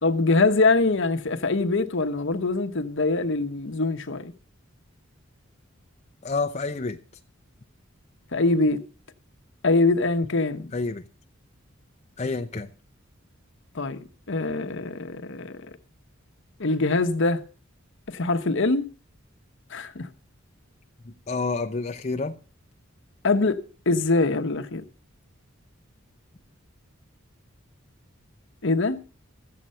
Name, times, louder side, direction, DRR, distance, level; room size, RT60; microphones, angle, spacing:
voice 1, 0.0-4.3 8.3-8.8 9.6-10.7 13.7-15.7 16.6-17.4 18.1-18.9 19.7-20.1 23.2-24.8 28.6-29.0, left 3 dB, 65° left, 1.0 m, -23 dB
voice 2, 6.2-7.0 10.7-11.0 12.2-12.7 21.0-22.4, left 3 dB, 35° left, 0.7 m, -29 dB
14.5 x 7.6 x 5.5 m
head